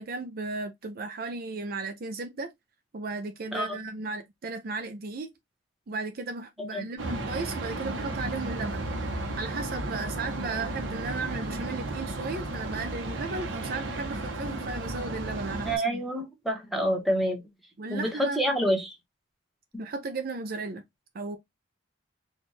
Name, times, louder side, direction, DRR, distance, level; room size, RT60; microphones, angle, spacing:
voice 1, 0.0-2.5 2.9-5.3 5.9-8.8 9.4-16.0 17.8-18.6 19.8-20.8 21.1-21.4, right 3 dB, 50° right, 0.5 m, -35 dB
sound 1, 7.0-15.8, right 2 dB, 75° right, 1.0 m, -34 dB
voice 2, 15.6-17.4 17.9-18.9, equal, ahead, 1.1 m, -27 dB
4.2 x 2.5 x 3.1 m
head